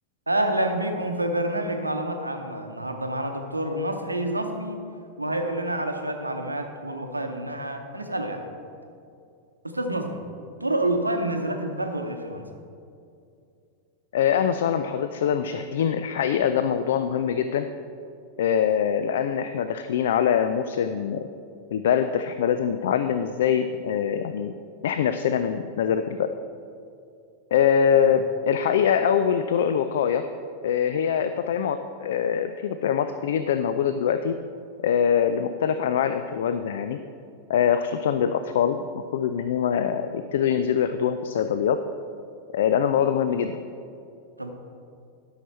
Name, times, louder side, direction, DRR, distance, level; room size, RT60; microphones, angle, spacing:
voice 1, 0.3-4.9 5.2-8.4 9.6-10.3 10.6-12.5 27.9-28.1 44.4-44.5, right 1 dB, 85° right, 5 dB, 0.8 m, -28 dB
voice 2, 14.1-17.7 18.4-21.3 21.7-24.5 24.8-26.3 27.5-30.3 30.6-34.4 34.8-37.0 37.5-41.8 42.5-43.6, left 8 dB, 60° left, 9 dB, 0.3 m, -23 dB
12.5 x 5.8 x 4.4 m, 2.5 s
figure-of-eight pair, 90°, 0 cm